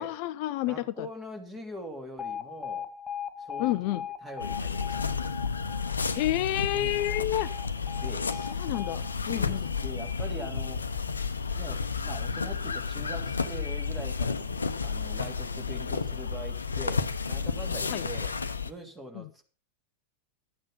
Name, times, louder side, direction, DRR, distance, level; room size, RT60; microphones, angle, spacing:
voice 1, 0.0-0.8 3.6-4.0 6.1-7.5 8.6-9.7 17.9-18.0 19.1-19.2, left 14 dB, 45° left, 15 dB, 0.5 m, -29 dB
voice 2, 0.6-2.9 3.4-3.9 4.2-5.0 5.3-5.5 6.7-7.0 7.9-8.3 9.3-10.8 11.5-18.3 18.6-19.4, equal, 10° right, 4 dB, 3.1 m, -42 dB
Alarm, 2.2-10.2, left 8 dB, 10° left, 1.4 m, -40 dB
sound 1, 4.4-18.7, left 5 dB, 75° left, 0.8 m, -32 dB
12.5 x 8.8 x 5.5 m, 0.37 s
figure-of-eight pair, 90°, 0 cm